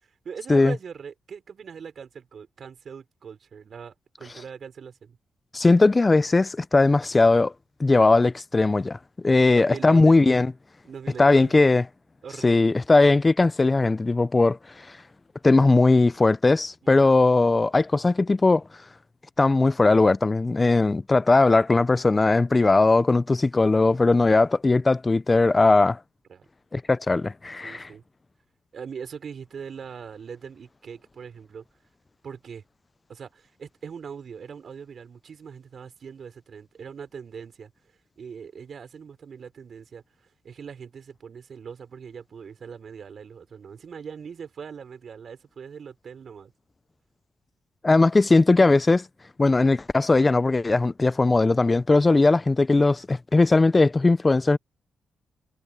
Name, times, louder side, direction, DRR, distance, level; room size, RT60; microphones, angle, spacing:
voice 1, 0.0-5.2 9.5-10.1 10.8-11.6 12.2-12.7 26.3-26.5 27.6-28.0 28.7-31.6 32.2-32.6 33.1-46.5 52.1-52.3, right 6 dB, 60° right, 5.0 m, -41 dB
voice 2, 5.5-7.5 7.8-9.0 9.2-10.5 11.2-11.8 12.4-15.0 15.4-18.6 19.4-26.0 26.7-27.9 47.8-49.0 49.4-54.6, left 3 dB, 30° left, 0.6 m, -19 dB
cardioid pair, 65°, 0 cm